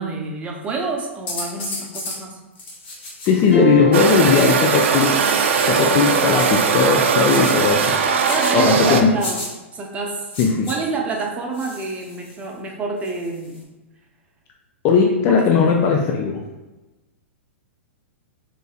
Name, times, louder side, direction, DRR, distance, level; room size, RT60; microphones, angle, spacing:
voice 1, 0.0-2.4 8.3-9.4 9.7-10.2 10.7-13.6 15.3-15.9, right 3 dB, 20° right, 1 dB, 0.6 m, -28 dB
sound 1, 1.3-2.2 2.6-3.5 4.0-5.8 6.4-6.6 7.3-7.6 8.2-8.5 9.2-9.5 10.3-10.8 11.5-12.4 13.0-13.6, left 2 dB, 60° left, 1.2 m, -33 dB
voice 2, 3.2-5.2 5.7-8.0 8.5-9.1 10.4-10.7 14.8-16.4, left 5 dB, 35° left, 1 dB, 0.3 m, -17 dB
sound 2, 3.5-5.8, left 1 dB, 80° left, 1.2 m, -26 dB
sound 3, 3.9-9.0, right 6 dB, 65° right, 0.4 m, -19 dB
3.9 x 2.6 x 2.4 m, 1.1 s
hypercardioid pair, 110°, 7 cm